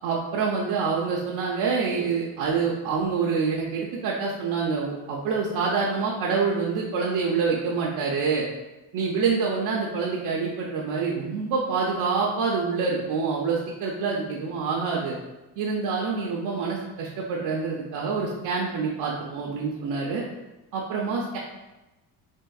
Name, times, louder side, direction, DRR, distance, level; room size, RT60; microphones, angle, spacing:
voice 1, 0.0-8.4 8.9-15.2 15.6-20.2 20.7-21.4, right 5 dB, 60° right, -3 dB, 0.6 m, -26 dB
3.5 x 2.5 x 2.3 m, 1.0 s
supercardioid pair, 80°, 43 cm